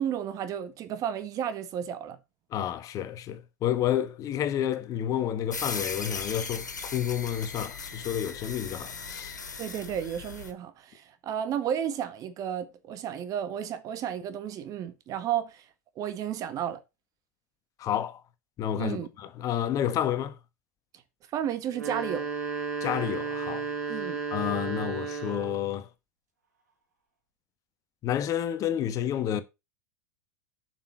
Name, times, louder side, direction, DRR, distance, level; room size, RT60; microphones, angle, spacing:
voice 1, 0.0-2.2 9.6-15.7 15.9-16.8 18.7-19.1 21.3-22.3 23.9-24.2, right 9 dB, 40° right, 1.6 m, -32 dB
voice 2, 2.5-9.4 17.8-18.2 18.6-20.3 22.8-23.7 24.3-25.9 28.0-29.4, left 10 dB, 35° left, 1.2 m, -30 dB
sound 1, 5.5-10.5, left 4 dB, 90° left, 1.9 m, -38 dB
sound 2, 21.7-25.7, right 4 dB, 70° right, 3.4 m, -33 dB
7.3 x 6.3 x 6.2 m
hypercardioid pair, 90°, 9 cm